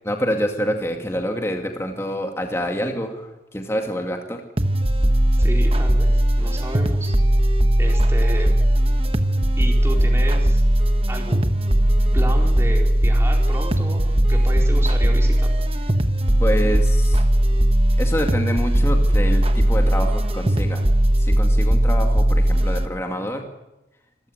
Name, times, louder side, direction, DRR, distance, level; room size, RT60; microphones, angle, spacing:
voice 1, 0.1-4.4 16.4-17.2 18.0-20.8 21.2-23.4, equal, 15° left, 3 dB, 2.3 m, -26 dB
sound 1, 4.6-22.9, right 1 dB, 30° right, 1.2 m, -18 dB
voice 2, 5.3-7.2 7.8-8.6 9.6-10.6 11.1-11.5 12.1-15.6, right 1 dB, 15° right, 0 dB, 4.3 m, -32 dB
26.5 x 15.0 x 9.2 m, 0.95 s
head